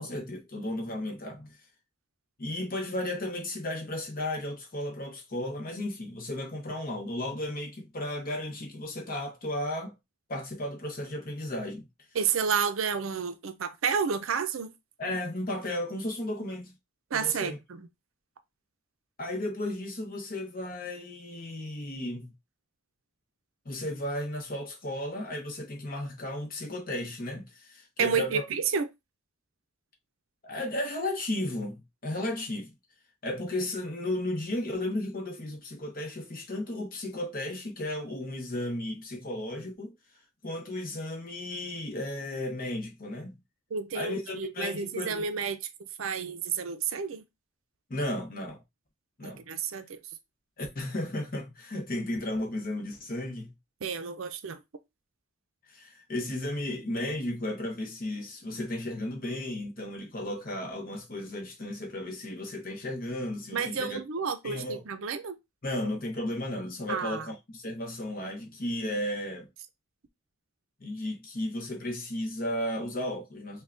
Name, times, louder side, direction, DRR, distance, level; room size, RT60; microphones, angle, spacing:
voice 1, 0.0-1.6 2.4-10.0 10.3-11.9 15.0-16.7 17.1-17.6 19.2-22.3 23.6-28.5 30.4-32.7 33.2-39.9 40.4-43.4 43.9-45.3 47.9-48.6 49.2-49.4 50.6-53.5 55.7-64.0 64.4-64.8 65.6-69.5 70.8-73.6, left 1 dB, 40° left, 0.9 m, -34 dB
voice 2, 12.1-14.7 17.1-17.9 28.0-28.9 43.7-47.2 49.2-50.0 53.8-54.6 63.5-65.3 66.9-67.3, right 6 dB, 65° right, 0.5 m, -30 dB
5.4 x 2.2 x 2.5 m
head